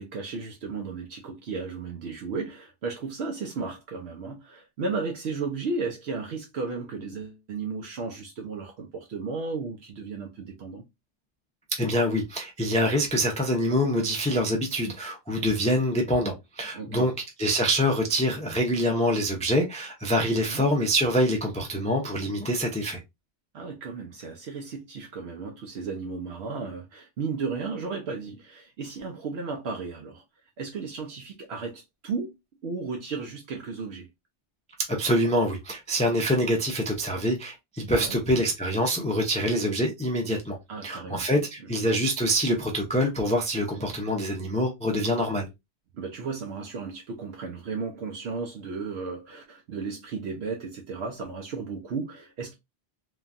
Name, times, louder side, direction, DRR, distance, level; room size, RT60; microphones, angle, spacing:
voice 1, 0.0-10.8 16.7-17.1 20.3-20.7 23.5-30.2 30.6-32.3 32.6-34.1 37.9-38.2 40.7-41.2 45.9-52.5, right 4 dB, 75° right, 0.8 m, -34 dB
voice 2, 11.8-17.1 17.4-23.0 34.9-40.6 40.8-45.5, equal, 10° left, 0.3 m, -25 dB
3.2 x 2.2 x 2.4 m
omnidirectional pair, 1.1 m